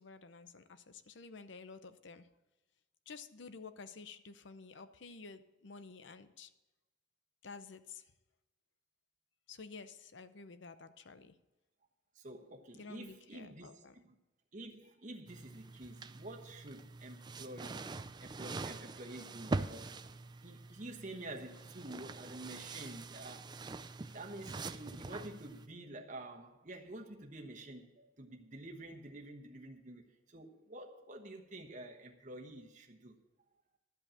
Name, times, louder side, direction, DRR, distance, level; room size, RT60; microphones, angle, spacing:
voice 1, 0.0-2.3 3.1-6.5 7.4-8.1 9.5-11.4 12.7-13.9, left 4 dB, 65° left, 12 dB, 0.7 m, -51 dB
voice 2, 12.1-14.1 14.5-17.9 18.2-23.8 24.1-33.2, right 1 dB, 40° right, 1 dB, 1.2 m, -49 dB
sound 1, 15.3-25.7, right 3 dB, 20° right, 0.3 m, -44 dB
12.0 x 5.4 x 8.6 m, 1.0 s
head